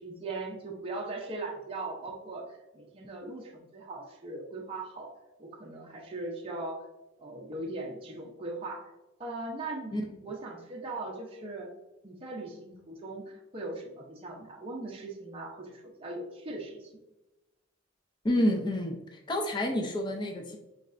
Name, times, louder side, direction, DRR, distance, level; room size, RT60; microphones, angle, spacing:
voice 1, 0.0-5.1 5.4-6.9 7.2-8.8 9.2-9.9 10.2-11.7 12.0-16.9, right 2 dB, 30° right, -1 dB, 0.6 m, -39 dB
voice 2, 18.2-20.6, left 1 dB, 25° left, 1 dB, 0.5 m, -29 dB
4.7 x 3.2 x 2.5 m, 1.0 s
head